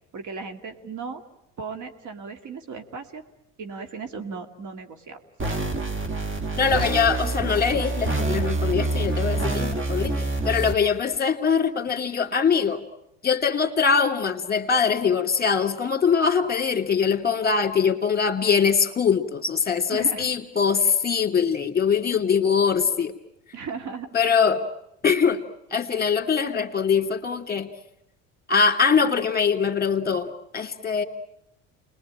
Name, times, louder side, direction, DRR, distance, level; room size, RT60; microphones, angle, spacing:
voice 1, 0.1-1.2 1.6-3.2 3.6-5.2 19.9-20.3 23.5-24.1, right 5 dB, 50° right, 7 dB, 2.5 m, -36 dB
sound 1, 5.4-10.7, right 2 dB, 35° right, 2.2 m, -26 dB
voice 2, 6.6-12.8 13.2-23.1 24.1-24.6 25.0-25.4 25.7-27.7 28.5-31.0, left 6 dB, 25° left, 6 dB, 2.8 m, -22 dB
28.5 x 21.5 x 8.9 m, 0.86 s
hypercardioid pair, 75°, 37 cm